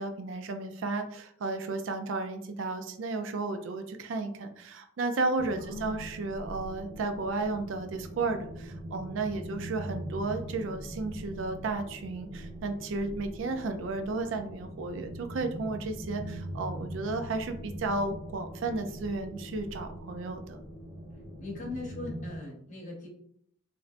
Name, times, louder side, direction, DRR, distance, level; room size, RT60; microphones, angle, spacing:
voice 1, 0.0-20.6, right 3 dB, 70° right, 6 dB, 0.4 m, -33 dB
sound 1, 5.4-22.4, right 1 dB, 20° right, 1.1 m, -42 dB
voice 2, 5.6-6.0 21.4-23.1, left 2 dB, 40° left, -1 dB, 0.8 m, -40 dB
3.2 x 2.5 x 2.5 m, 0.65 s
head